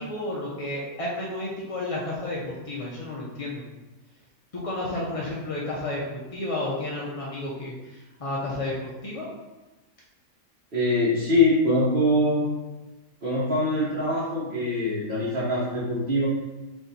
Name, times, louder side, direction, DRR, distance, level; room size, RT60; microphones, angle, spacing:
voice 1, 0.0-3.6 4.5-9.3, left 2 dB, 50° left, -5 dB, 0.4 m, -32 dB
voice 2, 10.7-12.5 13.2-16.3, left 1 dB, 40° right, -9 dB, 1.1 m, -23 dB
4.6 x 2.6 x 4.0 m, 1.1 s
omnidirectional pair, 1.6 m